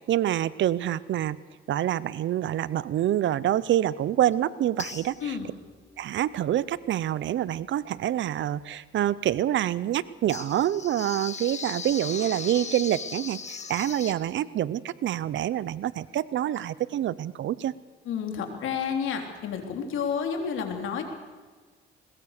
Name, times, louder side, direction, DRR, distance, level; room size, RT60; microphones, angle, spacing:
voice 1, 0.0-1.4 1.7-5.4 6.0-17.7, right 12 dB, 70° right, 19 dB, 0.8 m, -26 dB
sound 1, 4.3-4.4 4.8-5.5 10.3-14.1, left 5 dB, 35° left, 1.8 m, -37 dB
voice 2, 18.1-21.0, left 7 dB, 80° left, 4 dB, 3.6 m, -30 dB
22.0 x 20.5 x 6.7 m, 1.4 s
cardioid pair, 90°, 20 cm